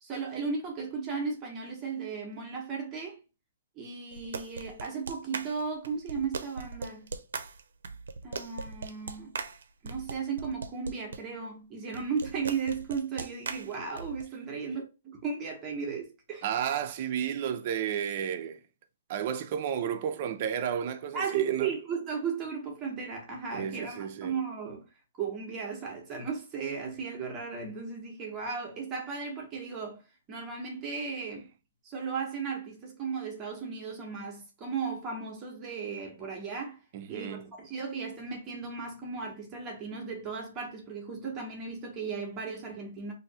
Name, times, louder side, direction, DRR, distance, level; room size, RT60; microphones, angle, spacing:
voice 1, 0.0-3.2 3.8-7.1 8.2-9.3 9.8-16.4 21.1-24.8 25.2-30.0 30.3-31.5 31.8-36.8 37.1-43.1, right 5 dB, 20° right, 1.0 m, -35 dB
sound 1, 4.1-11.2 11.9-14.2, right 4 dB, 80° right, 0.6 m, -39 dB
voice 2, 16.4-18.6 19.1-21.7 23.5-24.4 36.9-37.5, right 8 dB, 40° right, 0.5 m, -32 dB
3.1 x 2.7 x 4.0 m
hypercardioid pair, 160°, 0 cm